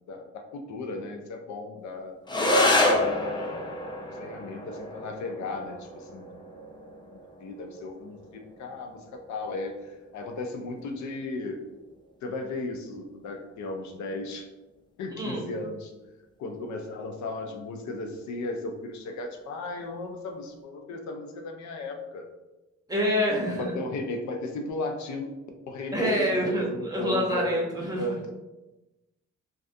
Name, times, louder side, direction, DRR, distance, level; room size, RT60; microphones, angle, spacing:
voice 1, 0.1-2.2 2.9-3.7 4.1-6.4 7.4-11.6 12.2-14.5 15.0-15.9 16.4-22.3 23.5-25.3 25.7-27.5 28.0-28.2, left 2 dB, 75° left, 3 dB, 0.5 m, -35 dB
sound 1, 2.3-11.3, left 1 dB, 15° left, 0.4 m, -29 dB
voice 2, 22.9-23.8 25.9-28.0, equal, 15° right, -3 dB, 0.7 m, -26 dB
2.4 x 2.3 x 2.5 m, 1.0 s
cardioid pair, 90°, 29 cm